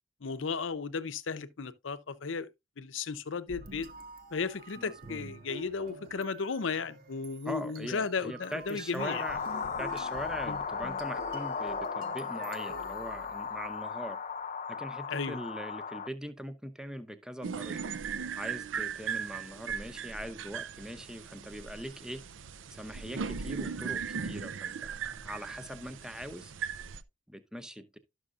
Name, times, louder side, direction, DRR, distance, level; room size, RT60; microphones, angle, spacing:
voice 1, 0.2-2.5 2.8-3.9 4.3-9.2 10.5-10.6 15.1-15.4, left 5 dB, 85° left, 0.7 m, -35 dB
sound 1, 3.5-13.8, right 2 dB, 50° right, 0.9 m, -48 dB
voice 2, 4.7-5.2 7.5-9.4 9.8-14.2 14.7-17.8 18.3-22.2 22.7-26.5 27.3-28.0, equal, 5° right, 0.7 m, -41 dB
sound 2, 9.0-16.1, left 5 dB, 35° left, 0.4 m, -36 dB
sound 3, 17.4-27.0, right 6 dB, 80° right, 0.5 m, -38 dB
12.0 x 6.3 x 2.4 m
head